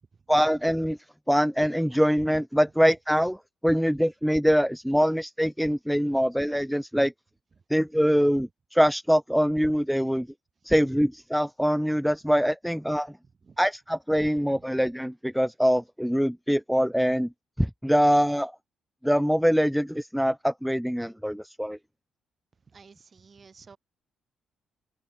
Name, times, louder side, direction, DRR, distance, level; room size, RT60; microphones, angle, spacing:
voice 1, 0.3-1.0 1.3-3.4 3.6-7.1 7.7-10.3 10.6-13.1 13.6-17.3 17.6-18.5 19.0-21.8, equal, ahead, 1.2 m, -24 dB
voice 2, 13.2-13.6 14.5-14.6 22.7-23.8, right 5 dB, 35° right, 7.5 m, -53 dB
cardioid pair, 90°, 0 cm